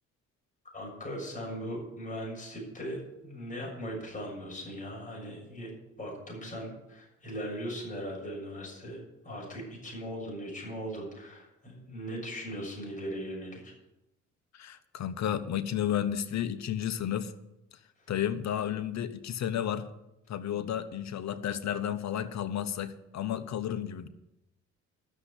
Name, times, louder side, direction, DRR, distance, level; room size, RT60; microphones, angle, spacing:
voice 1, 0.7-5.7 6.0-13.7 18.0-18.1, equal, 25° left, -1 dB, 6.7 m, -39 dB
voice 2, 14.5-17.3 18.1-19.9 20.3-24.1, left 10 dB, 65° left, 12 dB, 1.0 m, -32 dB
12.5 x 7.3 x 9.9 m, 0.92 s
cardioid pair, 90°, 30 cm